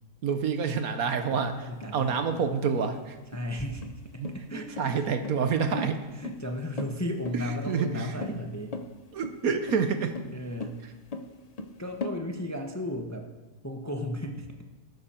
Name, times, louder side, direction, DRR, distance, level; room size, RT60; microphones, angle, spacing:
voice 1, 0.2-3.2 4.2-6.0 7.3-8.4 9.1-10.1, right 6 dB, 65° right, 8 dB, 1.3 m, -28 dB
sound 1, 1.3-12.2, left 3 dB, 40° left, 0.5 m, -39 dB
voice 2, 1.6-2.2 3.3-3.9 4.1-5.0 5.7-5.8 6.1-8.8 10.3-10.8 11.8-13.3 13.6-14.6, left 1 dB, 15° left, 3 dB, 0.8 m, -35 dB
13.5 x 12.0 x 4.4 m, 1.2 s
omnidirectional pair, 1.7 m